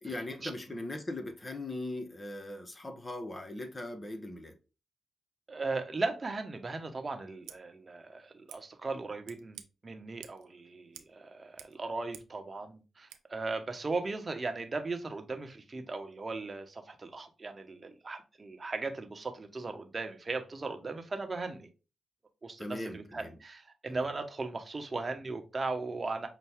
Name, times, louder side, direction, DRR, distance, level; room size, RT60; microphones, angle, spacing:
voice 1, 0.0-4.6 22.6-23.3, left 1 dB, 30° left, 0.9 m, -39 dB
voice 2, 5.5-21.7 22.4-26.3, right 3 dB, 40° right, 1.0 m, -37 dB
Scissors, 7.4-7.6 8.5-8.6 9.2-9.7 10.2-10.5 10.9-11.2 11.4-12.4 13.1-13.2, right 10 dB, 85° right, 0.4 m, -51 dB
5.6 x 2.2 x 3.5 m
supercardioid pair, 40°, 0 cm